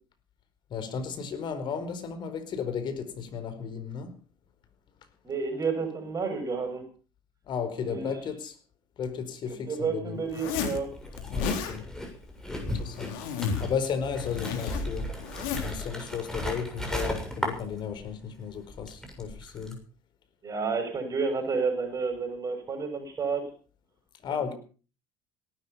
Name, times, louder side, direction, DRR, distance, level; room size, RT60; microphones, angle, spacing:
voice 1, 0.7-4.2 7.5-8.6 9.0-10.2 11.3-11.8 12.6-13.2 13.6-15.1 15.6-19.8 24.2-24.5, left 7 dB, 50° left, 4.6 m, -34 dB
voice 2, 5.2-6.9 7.8-8.1 9.7-10.9 20.4-23.5 24.3-24.5, right 5 dB, 35° right, 6.9 m, -30 dB
Zipper (clothing), 10.3-10.8 11.2-11.7 12.6-13.7 14.0-15.8, left 7 dB, 75° left, 3.7 m, -33 dB
sound 1, 10.9-18.2 18.5-19.7, left 1 dB, 5° left, 7.2 m, -35 dB
18.0 x 12.5 x 5.7 m
hypercardioid pair, 75°, 10 cm